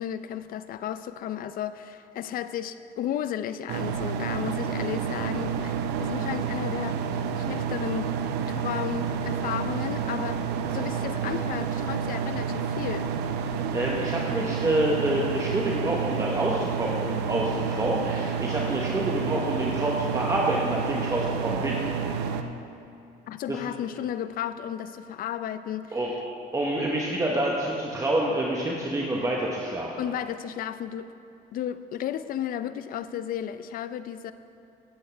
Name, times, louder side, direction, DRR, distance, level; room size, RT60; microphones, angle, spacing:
voice 1, 0.0-8.1 8.5-10.4 10.7-13.1 23.3-26.0 30.0-31.1 31.5-34.3, left 10 dB, 55° left, 12 dB, 0.5 m, -33 dB
sound 1, 3.7-22.4, right 6 dB, 85° right, 0.6 m, -29 dB
voice 2, 13.7-21.8 23.5-23.6 25.9-26.1 26.5-29.9, right 1 dB, 20° right, -3 dB, 1.1 m, -27 dB
15.0 x 8.0 x 3.4 m, 2.5 s
cardioid pair, 110°, 17 cm